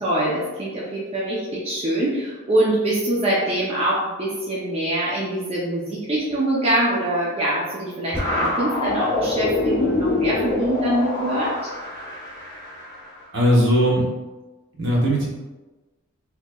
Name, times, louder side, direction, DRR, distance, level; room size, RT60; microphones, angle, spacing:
voice 1, 0.0-11.6, right 1 dB, 25° right, -7 dB, 0.5 m, -24 dB
sound 1, 8.1-13.2, left 2 dB, 15° left, 1.1 m, -25 dB
voice 2, 13.3-14.1 14.8-15.3, equal, 55° right, -4 dB, 0.9 m, -18 dB
4.3 x 2.9 x 2.3 m, 1.2 s
head